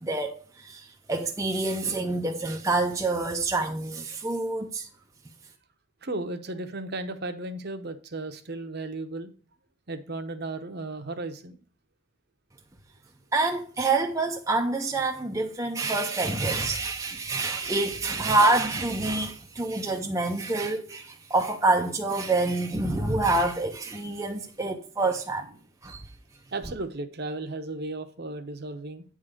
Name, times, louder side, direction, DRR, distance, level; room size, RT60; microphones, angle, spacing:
voice 1, 0.0-4.9 13.3-25.5 25.8-26.0, right 2 dB, 15° right, 0.5 m, -27 dB
voice 2, 6.0-9.3 9.9-11.6 17.6-17.8 18.2-18.3 26.5-29.0, right 2 dB, 45° right, 0.8 m, -35 dB
8.9 x 3.8 x 6.5 m
head